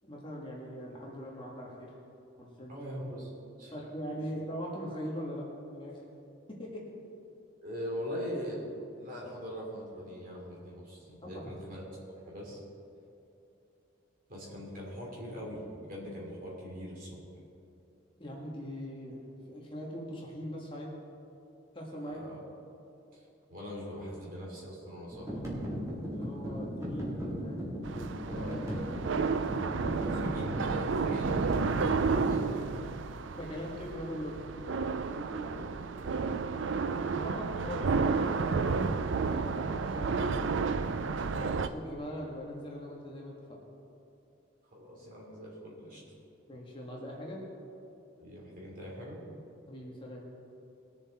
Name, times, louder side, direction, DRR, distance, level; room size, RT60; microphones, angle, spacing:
voice 1, 0.0-1.9 2.4-2.9 3.7-5.4 5.7-5.9 6.6-6.8 11.2-11.5 18.2-19.2 19.5-20.9 21.7-22.2 26.1-27.2 27.4-27.7 33.3-34.4 37.2-40.5 41.3-43.6 46.5-47.4 49.7-50.2, equal, 25° left, -3 dB, 1.8 m, -41 dB
voice 2, 2.7-3.3 3.6-3.7 4.2-4.3 7.6-8.7 9.0-11.8 12.2-12.6 14.3-17.2 22.0-22.4 23.1-23.2 23.5-25.3 28.2-29.0 29.6-32.8 35.1-35.7 44.7-46.0 48.2-49.2, equal, 45° right, -4 dB, 3.0 m, -41 dB
sound 1, 25.1-32.4, equal, 15° right, 2.1 m, -37 dB
sound 2, 27.8-41.7, right 4 dB, 65° right, 0.5 m, -31 dB
21.0 x 7.0 x 4.3 m, 2.7 s
head